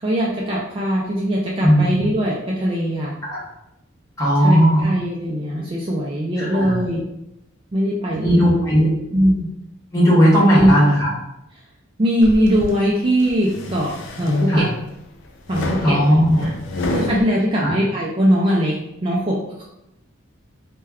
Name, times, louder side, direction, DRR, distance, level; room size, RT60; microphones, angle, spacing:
voice 1, 0.0-3.1 4.4-7.0 7.7-8.5 9.1-9.5 10.5-10.7 12.0-14.7 15.5-16.5 16.9-19.6, equal, 25° right, -4 dB, 0.3 m, -21 dB
voice 2, 1.6-1.9 3.3-3.4 4.2-4.8 6.4-6.8 8.2-8.9 9.9-11.1 14.5-14.7 15.8-16.5 17.6-17.7, equal, 15° left, -8 dB, 0.8 m, -16 dB
sound 1, 12.2-12.8 13.3-14.9 15.5-17.2, left 2 dB, 60° left, 0.3 m, -27 dB
2.2 x 2.1 x 3.4 m, 0.87 s
head